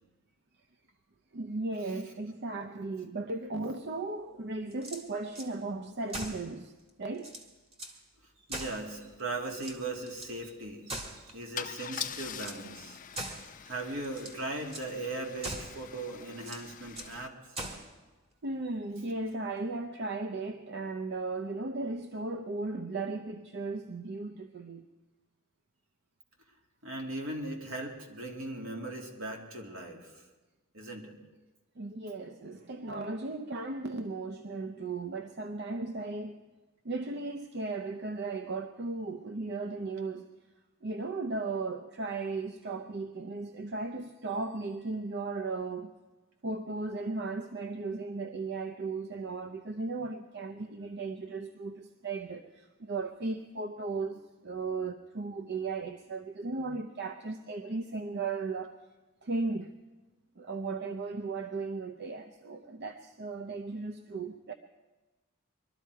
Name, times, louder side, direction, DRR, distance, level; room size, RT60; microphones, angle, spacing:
voice 1, 1.3-6.7 7.0-7.4 18.4-24.9 31.8-36.4 36.8-40.3 40.8-45.9 46.4-58.7 59.2-59.8 60.4-64.5, right 3 dB, 50° right, 0.6 m, -36 dB
sound 1, 4.7-5.5 6.1-6.5 6.9-7.0 7.2-8.0 8.5-9.2 9.5-10.3 10.9-11.5 11.9-12.7 13.2-13.5 14.0-14.4 14.7-14.9 15.4-15.8 16.4-17.2 17.6-17.9, right 1 dB, 30° right, 1.7 m, -41 dB
voice 2, 8.5-11.0 11.3-13.0 13.6-17.3 26.8-30.1 30.7-31.2, right 2 dB, 70° right, 2.4 m, -38 dB
Car / Engine starting / Idling, 8.9-9.0 9.3-9.6 11.6-17.3, left 9 dB, 40° left, 0.5 m, -44 dB
22.0 x 13.0 x 4.7 m
head